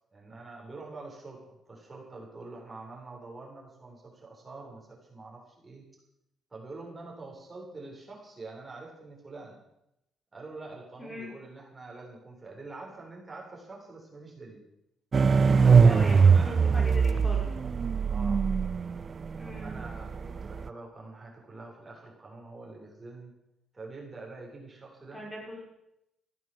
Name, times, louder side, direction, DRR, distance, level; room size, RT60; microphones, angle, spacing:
voice 1, 0.1-5.8 6.5-9.6 10.3-14.6 15.6-16.6 18.1-18.5 19.4-23.3 23.7-25.2, right 3 dB, 25° right, -2 dB, 7.6 m, -45 dB
voice 2, 11.0-11.3 15.8-17.5 19.4-19.8 25.1-25.6, left 1 dB, 10° left, -2 dB, 6.1 m, -40 dB
sound 1, 15.1-20.7, right 5 dB, 40° right, 0.5 m, -22 dB
16.0 x 11.0 x 8.3 m, 0.84 s
cardioid pair, 90°, 0 cm